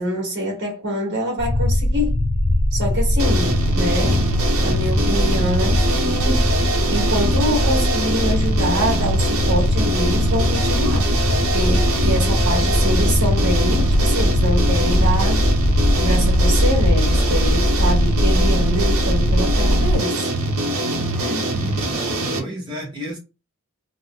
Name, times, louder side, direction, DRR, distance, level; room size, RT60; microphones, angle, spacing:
voice 1, 0.0-2.2 2.7-4.2 4.6-6.5 6.9-15.4 15.9-20.3, equal, 55° right, 1.6 m, -25 dB
sound 1, 1.4-19.9, left 1 dB, 25° left, 0.4 m, -20 dB
sound 2, 3.2-22.4, right 2 dB, 80° right, 0.8 m, -23 dB
voice 2, 21.1-22.1 22.3-23.2, equal, 20° right, 1.3 m, -32 dB
4.0 x 2.1 x 2.3 m
head